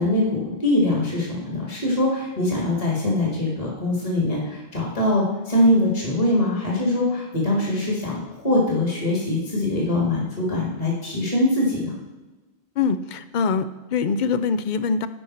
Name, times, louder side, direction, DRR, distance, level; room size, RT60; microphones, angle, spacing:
voice 1, 0.0-12.0, left 1 dB, 30° left, -3 dB, 1.8 m, -23 dB
voice 2, 12.8-15.1, left 5 dB, 60° left, 12 dB, 0.5 m, -23 dB
10.0 x 5.2 x 4.2 m, 1.2 s
omnidirectional pair, 1.1 m